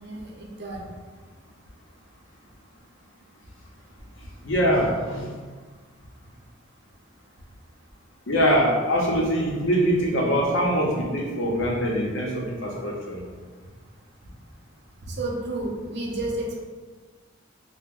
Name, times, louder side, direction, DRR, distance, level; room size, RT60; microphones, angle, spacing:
voice 1, 0.0-0.8 15.1-16.6, right 2 dB, 60° right, -1 dB, 0.6 m, -31 dB
voice 2, 4.4-5.3 8.3-13.2, equal, 75° left, -2 dB, 0.7 m, -23 dB
2.8 x 2.1 x 3.6 m, 1.4 s
head